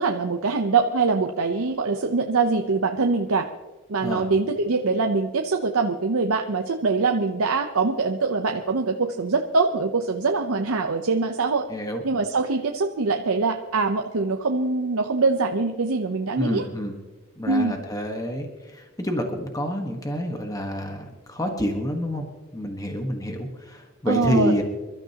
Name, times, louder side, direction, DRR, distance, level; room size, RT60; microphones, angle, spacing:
voice 1, 0.0-3.5 3.9-11.7 12.0-16.7 17.5-17.8 24.1-24.5, right 4 dB, 80° right, 4 dB, 0.8 m, -23 dB
voice 2, 11.7-12.0 16.4-16.9 17.4-18.5 18.7-22.2 22.5-24.6, equal, 15° left, 3 dB, 1.3 m, -28 dB
27.0 x 13.0 x 2.9 m, 1.3 s
head